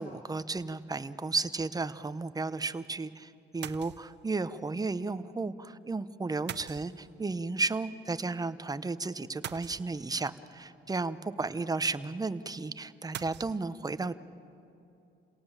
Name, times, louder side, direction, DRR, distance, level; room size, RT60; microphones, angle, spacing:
voice 1, 0.0-14.2, right 3 dB, 20° right, 13 dB, 0.8 m, -33 dB
sound 1, 3.6-4.3 6.5-7.4 9.4-10.4 13.1-13.6, right 11 dB, 60° right, 0.6 m, -43 dB
29.0 x 18.0 x 7.3 m, 2.8 s
cardioid pair, 90°, 20 cm